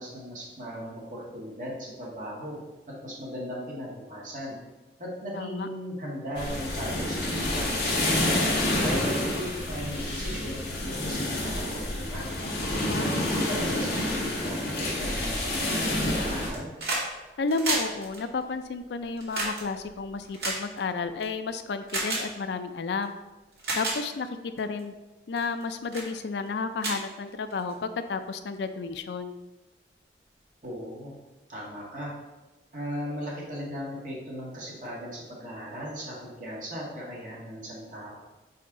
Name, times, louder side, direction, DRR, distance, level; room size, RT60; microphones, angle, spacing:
voice 1, 0.0-2.6 3.0-4.6 5.0-8.5 8.8-12.3 13.0-16.7 30.6-31.1 31.5-32.1 32.7-38.1, equal, 45° right, -5 dB, 1.8 m, -37 dB
voice 2, 5.4-5.7 12.8-13.3 17.4-23.1 23.8-24.9 25.3-29.3, left 4 dB, 75° left, 10 dB, 0.4 m, -32 dB
sound 1, 6.3-16.5, left 1 dB, 60° left, 1.3 m, -28 dB
sound 2, 16.5-17.1 17.4-21.2 21.9-22.2 23.0-23.1 23.5-24.0 24.6-24.8 25.4-25.6 25.9-26.1 26.5-26.6 26.8-27.7 28.9-29.0, right 2 dB, 65° right, 1.8 m, -31 dB
4.6 x 4.3 x 4.9 m, 1.1 s
head